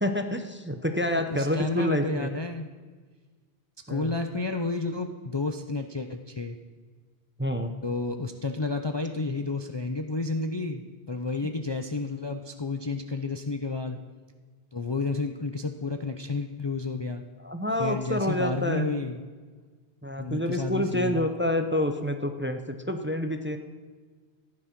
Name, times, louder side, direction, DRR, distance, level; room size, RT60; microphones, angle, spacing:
voice 1, 0.0-2.3 3.9-4.1 7.4-7.7 17.4-18.9 20.0-23.6, left 1 dB, 10° right, 6 dB, 0.7 m, -28 dB
voice 2, 1.3-2.7 3.9-6.6 7.8-14.0 14.7-17.2 17.8-19.2 20.2-21.3, left 3 dB, 30° left, 5 dB, 0.6 m, -31 dB
15.0 x 9.8 x 6.0 m, 1.4 s
omnidirectional pair, 1.1 m